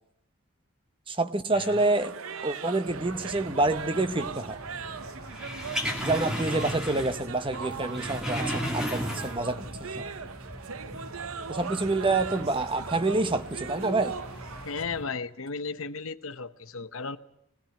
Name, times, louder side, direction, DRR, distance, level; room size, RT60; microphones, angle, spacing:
voice 1, 1.1-2.1 2.4-4.6 6.0-10.0 11.5-14.2, right 2 dB, 25° right, 0.9 m, -27 dB
sound 1, 1.7-14.8, right 6 dB, 75° right, 0.7 m, -39 dB
Car window, 2.8-15.0, left 1 dB, 20° left, 5.5 m, -45 dB
sound 2, 5.3-7.3 7.5-9.6 9.9-10.0, equal, 5° right, 2.7 m, -33 dB
voice 2, 14.6-17.2, left 4 dB, 70° left, 0.9 m, -35 dB
20.0 x 16.5 x 9.0 m
head